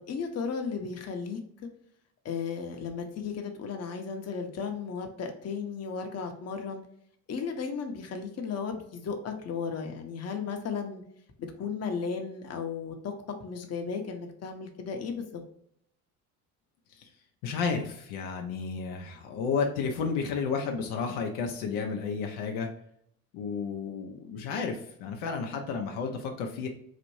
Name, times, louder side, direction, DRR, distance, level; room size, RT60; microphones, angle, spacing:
voice 1, 0.0-1.7 2.2-6.8 7.3-11.0 11.6-13.1 13.4-15.4, left 5 dB, 35° left, 4 dB, 0.9 m, -35 dB
voice 2, 17.4-22.7 23.3-26.7, left 5 dB, 70° left, 3 dB, 0.7 m, -32 dB
4.1 x 2.5 x 3.1 m, 0.69 s
hypercardioid pair, 65°, 43 cm